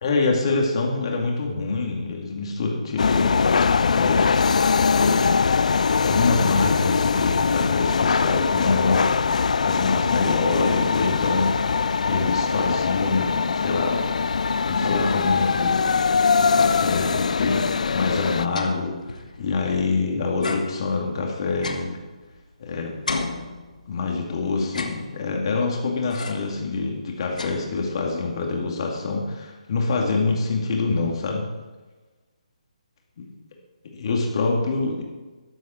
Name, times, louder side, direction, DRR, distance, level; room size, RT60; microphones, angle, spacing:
voice 1, 0.0-3.6 3.9-4.4 5.0-5.2 5.9-11.8 12.1-14.0 14.7-15.8 16.1-21.9 22.6-22.9 23.9-31.5 33.9-35.0, left 3 dB, 45° left, 0 dB, 2.5 m, -26 dB
sound 1, 3.0-18.5, left 5 dB, 70° left, 0.4 m, -22 dB
sound 2, 15.8-17.0 17.4-17.5 17.7-20.0 20.4-22.6 23.1-24.1 24.6-25.5 26.1-26.6 27.0-28.1, left 3 dB, 85° left, 1.4 m, -35 dB
13.0 x 8.3 x 4.5 m, 1.2 s
hypercardioid pair, 160°, 4 cm